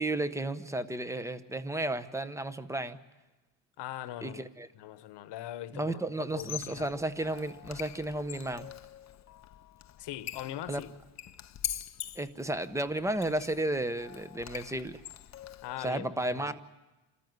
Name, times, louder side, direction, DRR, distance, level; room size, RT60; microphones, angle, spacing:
voice 1, 0.0-3.0 4.2-4.7 5.7-8.7 10.7-10.8 12.2-15.0 15.8-16.6, right 1 dB, 5° right, 0.7 m, -33 dB
voice 2, 3.8-4.4 4.7-6.0 6.3-6.9 10.0-10.9 15.6-16.6, left 12 dB, 60° left, 1.2 m, -41 dB
Squeak, 6.3-15.9, left 11 dB, 35° left, 0.7 m, -44 dB
27.0 x 14.0 x 9.5 m
cardioid pair, 135°, 47 cm